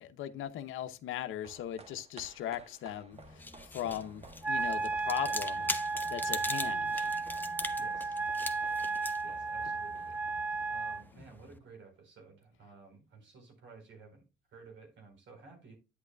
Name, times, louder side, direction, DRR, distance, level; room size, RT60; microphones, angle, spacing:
voice 1, 0.0-3.5 3.7-4.2 4.5-5.7 6.1-7.1 11.1-11.2, left 11 dB, 85° left, 0.8 m, -38 dB
sound 1, 1.1-11.7 12.0-12.1, right 3 dB, 30° right, 1.2 m, -56 dB
sound 2, 3.1-11.6, left 2 dB, 10° left, 0.8 m, -42 dB
Wind instrument woodwind instrument, 4.4-11.0, right 3 dB, 10° right, 0.4 m, -34 dB
voice 2, 7.8-8.2 9.2-10.2 10.7-14.2 14.5-15.8, right 4 dB, 70° right, 4.2 m, -54 dB
9.5 x 8.2 x 2.3 m
cardioid pair, 90°, 20 cm